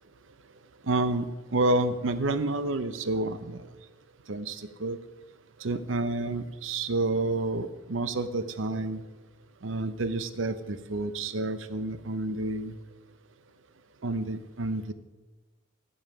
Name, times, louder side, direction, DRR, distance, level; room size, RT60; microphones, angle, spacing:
voice 1, 0.8-3.7 4.3-5.0 5.6-9.0 9.6-12.7 14.0-14.9, right 2 dB, 70° right, 12 dB, 0.7 m, -29 dB
14.5 x 5.6 x 5.6 m, 1.2 s
head